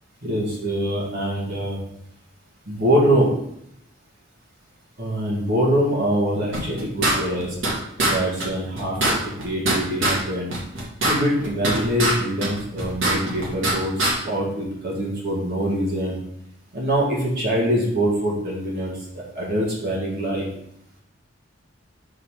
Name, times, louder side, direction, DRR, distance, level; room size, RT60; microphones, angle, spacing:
voice 1, 0.2-1.8 2.7-3.3 5.0-7.6 8.0-9.1 9.4-10.5 11.0-16.2 16.7-18.9 19.3-20.4, equal, 50° right, -5 dB, 1.7 m, -24 dB
sound 1, 6.5-7.7 8.0-8.1 8.4-8.5 8.8-10.2 10.5-12.1 12.4-13.7 14.0-14.1, right 1 dB, 65° right, 1.8 m, -22 dB
5.0 x 4.0 x 5.8 m, 0.74 s
head